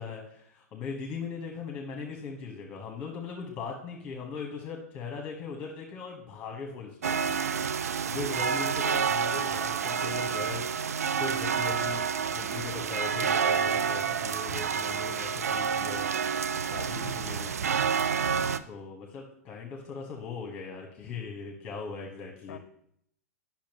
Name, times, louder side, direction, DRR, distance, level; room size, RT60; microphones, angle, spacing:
voice 1, 0.0-7.4 8.0-10.7 11.2-16.1 16.7-17.5 18.7-22.6, left 5 dB, 25° left, 1 dB, 1.2 m, -39 dB
sound 1, 7.0-18.6, right 6 dB, 65° right, 0.4 m, -29 dB
voice 2, 10.0-10.4 18.2-18.5 22.5-22.6, left 8 dB, 60° left, 13 dB, 0.6 m, -47 dB
10.0 x 5.8 x 3.0 m, 0.71 s
figure-of-eight pair, 100°, 9 cm